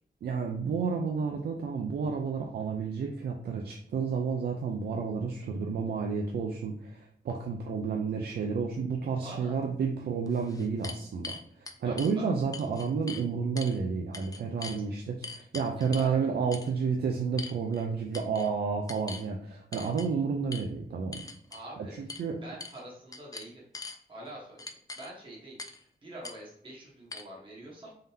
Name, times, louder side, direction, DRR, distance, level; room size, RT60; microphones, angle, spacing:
voice 1, 0.2-21.2 21.8-22.4, right 5 dB, 75° right, 2 dB, 0.5 m, -31 dB
voice 2, 9.2-9.6 11.8-12.3 15.8-16.2 21.5-23.6 24.1-27.9, right 1 dB, 30° right, -5 dB, 1.2 m, -46 dB
sound 1, 9.6-9.7 10.3-12.1 12.5-13.2 13.6-13.8 14.1-14.8 15.2-16.1 16.5-16.7 17.4-17.8 18.1-18.5 18.9-19.3 19.7-20.1 20.5-20.6 21.1-21.6 22.1-22.2 22.6-22.8 23.1-24.0 24.6-25.1 25.6-25.8 26.2-26.4 27.1-27.2, left 3 dB, 20° left, 0.3 m, -42 dB
3.7 x 3.5 x 2.7 m, 0.66 s
wide cardioid pair, 160°, 17 cm